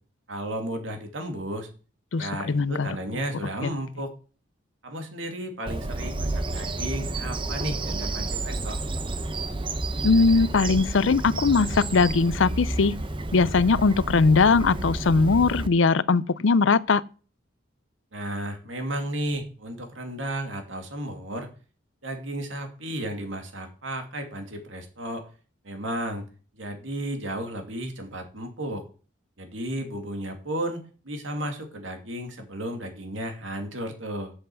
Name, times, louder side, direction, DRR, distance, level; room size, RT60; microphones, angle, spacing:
voice 1, 0.3-1.7 2.2-4.1 4.8-8.8 18.1-21.5 22.0-25.2 25.6-26.2 26.6-28.8 29.4-34.3, right 1 dB, 75° right, 2.6 m, -33 dB
voice 2, 2.1-2.9 3.6-3.7 10.0-13.0 13.3-17.0, left 4 dB, 75° left, 0.5 m, -20 dB
Bird vocalization bird call bird song, 5.7-15.7, right 2 dB, 25° right, 0.7 m, -30 dB
7.9 x 7.8 x 7.8 m
head